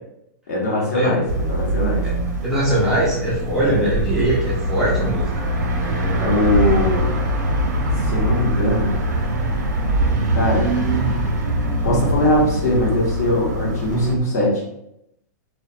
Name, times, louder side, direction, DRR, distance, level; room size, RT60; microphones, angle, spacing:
voice 1, 0.5-2.0 3.6-3.9 4.8-4.9 6.2-7.1 8.1-8.9 10.3-10.7 11.8-14.6, left 1 dB, 60° left, -2 dB, 0.9 m, -21 dB
sound 1, 1.3-14.1, right 1 dB, 85° right, 0.6 m, -22 dB
voice 2, 2.4-5.5, right 1 dB, 5° right, -7 dB, 0.3 m, -21 dB
2.2 x 2.2 x 2.6 m, 0.79 s
supercardioid pair, 175°, 9 cm